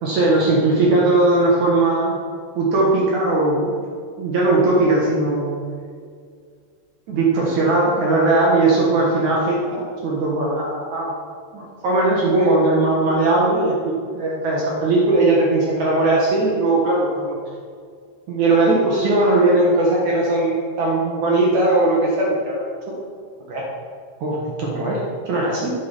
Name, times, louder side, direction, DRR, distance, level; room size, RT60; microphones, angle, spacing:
voice 1, 0.0-2.2 2.5-3.7 4.2-5.6 7.1-11.1 11.5-17.3 18.3-22.7 23.5-23.6 24.2-25.7, right 2 dB, 70° right, -4 dB, 1.8 m, -19 dB
9.6 x 7.6 x 5.5 m, 2.1 s
omnidirectional pair, 5.5 m